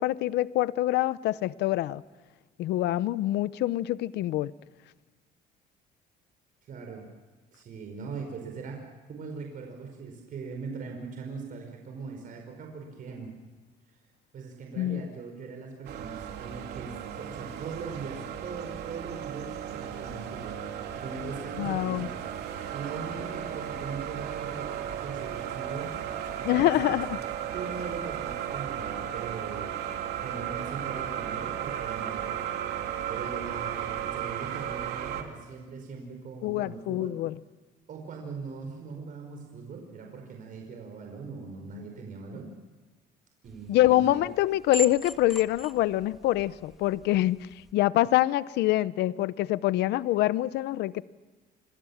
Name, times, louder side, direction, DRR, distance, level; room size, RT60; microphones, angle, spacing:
voice 1, 0.0-2.0 2.6-4.5 14.8-15.0 21.6-22.1 26.4-27.2 36.4-37.4 43.7-47.4 47.7-51.0, left 15 dB, 80° left, 0.8 m, -25 dB
voice 2, 6.6-7.1 7.5-8.8 9.1-13.3 14.3-20.6 21.0-26.0 26.4-27.0 27.5-29.9 30.2-37.2 37.9-42.5 43.4-44.2, right 5 dB, 55° right, 5.3 m, -40 dB
sound 1, 15.8-35.2, right 9 dB, 75° right, 3.3 m, -35 dB
sound 2, 43.4-47.7, right 1 dB, ahead, 1.6 m, -41 dB
27.5 x 25.5 x 7.3 m
cardioid pair, 110°, 17 cm